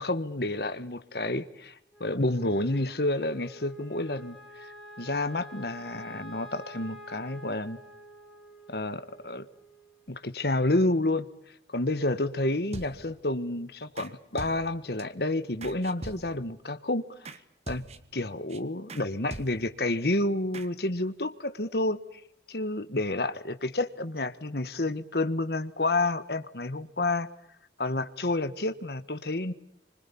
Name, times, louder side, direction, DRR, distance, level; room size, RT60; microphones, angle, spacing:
voice 1, 0.0-1.7 2.0-4.4 5.0-7.8 8.7-9.5 10.1-11.3 11.7-17.1 17.7-17.8 18.1-22.2 22.5-27.3 27.8-29.5, left 2 dB, 60° left, 1.5 m, -29 dB
Wind instrument woodwind instrument, 1.9-10.4, right 1 dB, ahead, 4.5 m, -48 dB
sound 1, 12.7-13.3 14.0-14.1 14.4-15.0 15.6-16.5 17.2-17.4 17.7-18.2 18.5-18.6 18.9-19.0 19.3-19.8 20.5-20.7, right 2 dB, 35° right, 1.6 m, -42 dB
28.0 x 25.5 x 7.1 m
head